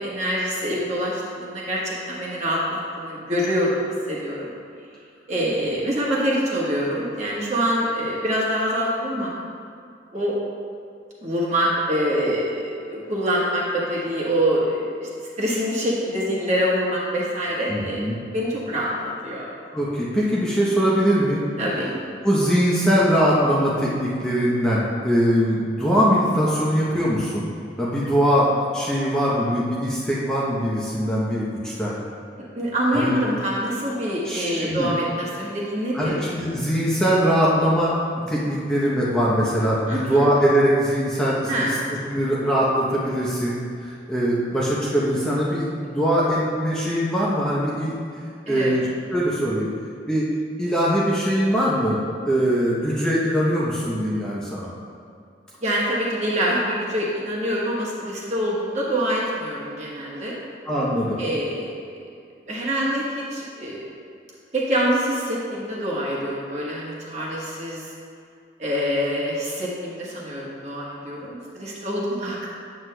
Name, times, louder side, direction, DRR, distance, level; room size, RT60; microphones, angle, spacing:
voice 1, 0.0-4.5 5.3-9.3 10.1-10.4 11.2-15.1 15.4-18.0 18.3-19.5 21.6-22.0 32.4-36.2 39.9-40.3 41.5-41.8 48.5-48.8 55.6-60.4 61.2-61.8 62.5-63.9 64.5-67.9 68.6-72.5, equal, 40° right, -5 dB, 1.3 m, -25 dB
voice 2, 17.7-18.2 19.7-21.4 22.2-27.5 27.8-32.0 32.9-33.1 34.2-34.9 35.9-37.9 38.3-41.7 42.1-47.9 48.5-48.8 49.1-49.7 50.1-50.2 50.6-52.0 52.3-54.7 60.7-61.2, equal, 5° left, -8 dB, 0.7 m, -21 dB
7.9 x 7.6 x 2.2 m, 2.3 s
head